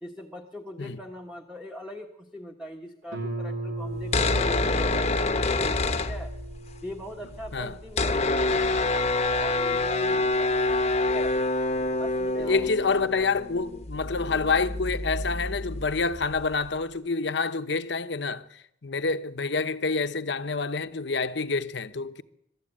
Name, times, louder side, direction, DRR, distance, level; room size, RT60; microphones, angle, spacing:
voice 1, 0.0-6.3 6.8-11.4 12.0-12.7, equal, 5° right, 1.3 m, -41 dB
Guitar, 3.1-8.5, right 1 dB, 65° right, 3.5 m, -37 dB
sound 1, 4.0-6.7 7.0-7.1 7.2-16.7, left 2 dB, 35° left, 0.9 m, -27 dB
voice 2, 12.4-22.2, left 4 dB, 60° left, 0.9 m, -27 dB
22.5 x 13.0 x 8.9 m
head